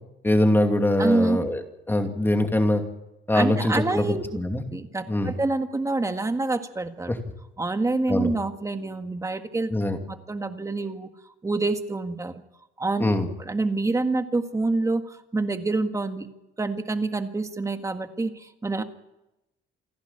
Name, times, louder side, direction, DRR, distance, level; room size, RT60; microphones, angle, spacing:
voice 1, 0.2-2.8 3.3-4.6 5.1-5.3 7.1-7.2 8.1-8.3 9.7-10.0 13.0-13.3, left 1 dB, 10° left, 5 dB, 2.6 m, -23 dB
voice 2, 1.0-1.4 3.3-4.2 4.7-7.1 7.6-9.7 10.1-11.1 11.4-12.3 12.8-13.1 13.4-16.3 16.6-18.8, right 3 dB, 15° right, 7 dB, 1.7 m, -27 dB
28.0 x 11.5 x 10.0 m, 0.94 s
cardioid pair, 115°, 20 cm